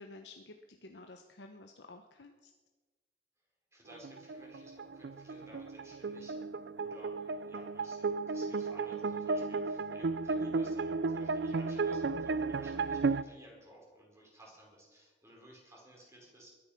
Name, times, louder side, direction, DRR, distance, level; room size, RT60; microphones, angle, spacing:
voice 1, 0.0-2.5, left 2 dB, 90° left, 5 dB, 0.9 m, -52 dB
voice 2, 3.7-6.4 6.7-16.5, equal, 15° right, -2 dB, 4.8 m, -57 dB
sound 1, 3.9-13.2, right 4 dB, 70° right, 0.5 m, -34 dB
21.5 x 9.8 x 5.9 m, 1.3 s
head